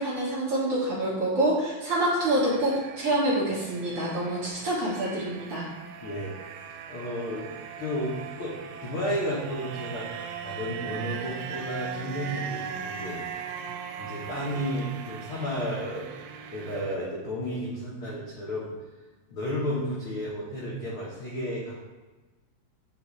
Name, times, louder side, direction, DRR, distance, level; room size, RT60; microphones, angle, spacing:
voice 1, 0.0-5.7, right 1 dB, 50° right, -7 dB, 2.0 m, -26 dB
sound 1, 2.3-17.0, right 7 dB, 90° right, 2.5 m, -39 dB
voice 2, 6.0-7.5 7.8-10.1 10.4-13.5 14.0-16.1 16.5-18.7 19.3-21.8, equal, 85° left, -6 dB, 1.1 m, -32 dB
9.0 x 4.5 x 3.1 m, 1.2 s
omnidirectional pair, 4.2 m